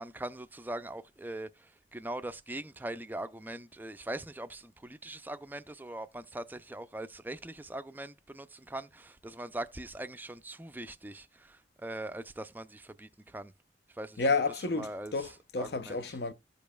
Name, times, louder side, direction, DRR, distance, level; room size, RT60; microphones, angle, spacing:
voice 1, 0.0-13.5 13.9-14.3 14.8-15.3 15.6-16.2, right 1 dB, 10° right, 0.4 m, -41 dB
voice 2, 14.2-16.3, left 3 dB, 65° left, 0.6 m, -31 dB
15.0 x 5.2 x 2.3 m
head